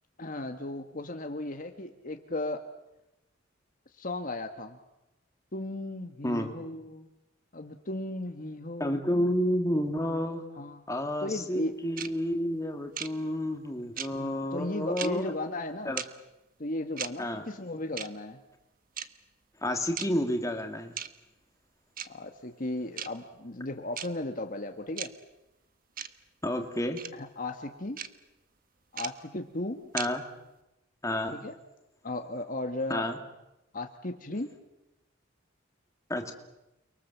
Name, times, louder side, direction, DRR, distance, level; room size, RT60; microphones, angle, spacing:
voice 1, 0.2-2.6 3.9-4.8 5.5-7.1 7.5-9.0 10.6-10.8 11.2-11.7 14.1-16.0 16.6-18.4 22.1-25.1 27.1-28.0 28.9-29.8 31.3-31.5 32.0-33.1 33.7-34.5, left 2 dB, 45° left, 5 dB, 1.6 m, -36 dB
voice 2, 6.2-6.5 8.8-10.4 10.9-15.3 15.9-16.0 17.2-17.4 19.6-20.9 26.4-27.0 29.9-30.2 31.0-31.4 32.9-33.2 36.1-36.3, left 1 dB, 15° left, 4 dB, 2.5 m, -30 dB
sound 1, 12.0-12.1 13.0-13.1 14.0-14.1 15.0-15.1 16.0-16.1 17.0-17.1 18.0-18.1 19.0-19.1 20.0-20.1 21.0-21.1 22.0-22.1 23.0-23.1 24.0-24.1 25.0-25.1 26.0-26.1 27.0-27.1 28.0-28.1 29.0-29.1 30.0-30.1, right 9 dB, 45° right, 1.3 m, -35 dB
30.0 x 23.5 x 7.4 m, 0.93 s
head